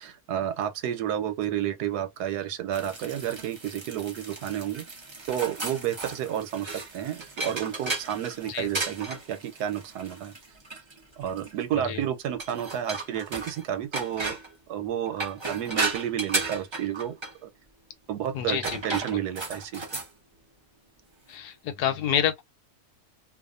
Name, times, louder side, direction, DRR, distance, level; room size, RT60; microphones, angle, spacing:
voice 1, 0.0-4.9 5.3-10.3 11.2-14.4 14.7-17.5 18.1-19.8, right 10 dB, 85° right, 1.2 m, -31 dB
sound 1, 2.7-11.6 12.4-13.6 13.9-14.5 15.1-17.3 18.4-20.1, right 3 dB, 30° right, 0.5 m, -35 dB
voice 2, 18.3-18.8 21.3-22.4, left 9 dB, 90° left, 1.2 m, -28 dB
2.7 x 2.4 x 2.4 m
omnidirectional pair, 1.7 m